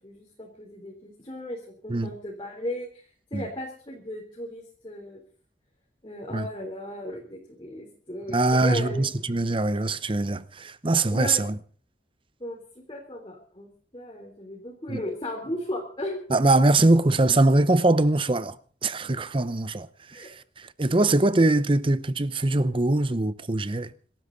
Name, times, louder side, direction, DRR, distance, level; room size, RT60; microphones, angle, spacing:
voice 1, 0.0-3.0 3.3-5.2 6.0-9.0 11.1-11.4 12.4-12.6 12.9-16.2 20.1-20.3, left 1 dB, 25° left, 3.8 m, -36 dB
voice 2, 8.3-11.6 14.9-15.0 16.3-18.6 18.8-23.9, right 2 dB, 30° right, 0.8 m, -22 dB
26.0 x 13.0 x 4.1 m
head